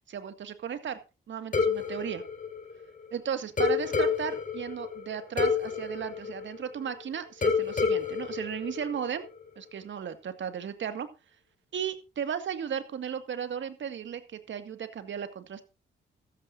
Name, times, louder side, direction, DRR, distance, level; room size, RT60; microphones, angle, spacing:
voice 1, 0.1-1.0 1.3-2.2 3.1-9.3 9.6-11.1 11.7-15.6, right 8 dB, 65° right, 9 dB, 2.0 m, -35 dB
sound 1, 1.5-3.1 3.6-7.0 7.4-9.4, left 5 dB, 40° left, 4.8 m, -29 dB
14.5 x 13.5 x 2.6 m, 0.29 s
cardioid pair, 70°, 21 cm